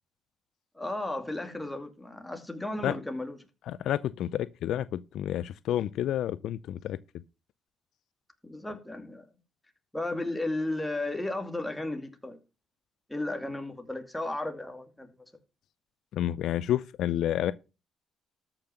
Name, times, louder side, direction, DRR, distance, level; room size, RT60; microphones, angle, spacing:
voice 1, 0.7-3.4 8.4-9.3 9.9-12.4 13.1-15.1, left 2 dB, 10° left, 2.5 m, -34 dB
voice 2, 3.7-7.0 16.1-17.5, left 11 dB, 80° left, 0.5 m, -30 dB
13.5 x 5.9 x 5.8 m
cardioid pair, 90°, 0 cm